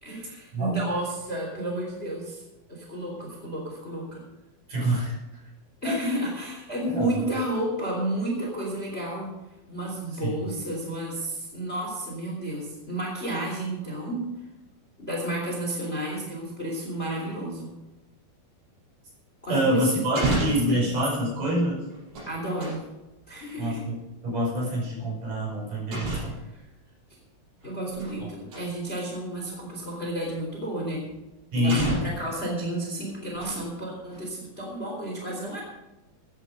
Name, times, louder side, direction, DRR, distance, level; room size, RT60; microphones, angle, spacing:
voice 1, 0.0-2.4 2.7-4.2 5.8-9.3 9.7-14.2 15.0-17.7 19.4-20.8 22.2-22.8 23.3-23.8 26.5-26.6 27.6-31.0 31.5-35.6, right 1 dB, 15° left, -1 dB, 3.0 m, -31 dB
voice 2, 4.7-5.2 5.8-6.0 6.9-7.2 10.2-10.5 19.5-21.9 23.6-24.0 24.2-26.4 31.5-32.0, equal, 55° right, -4 dB, 7.2 m, -26 dB
sound 1, 19.5-19.6 20.0-20.8 21.9-22.8 24.4-24.6 25.9-26.5 27.6-28.2 28.5-28.7 29.6-29.7 31.1-31.2 31.7-32.3 33.1-33.7 34.1-34.2, right 2 dB, 85° right, 7.4 m, -31 dB
14.5 x 10.0 x 5.4 m, 1.0 s
omnidirectional pair, 4.6 m